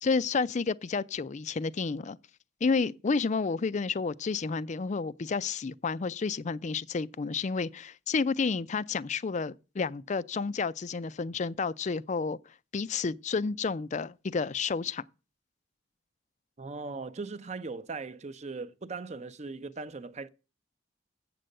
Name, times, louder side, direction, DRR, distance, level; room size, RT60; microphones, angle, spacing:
voice 1, 0.0-2.2 2.6-12.4 12.7-15.0, left 4 dB, 40° left, 0.4 m, -30 dB
voice 2, 16.6-20.3, right 4 dB, 35° right, 0.6 m, -39 dB
7.8 x 7.6 x 6.5 m
head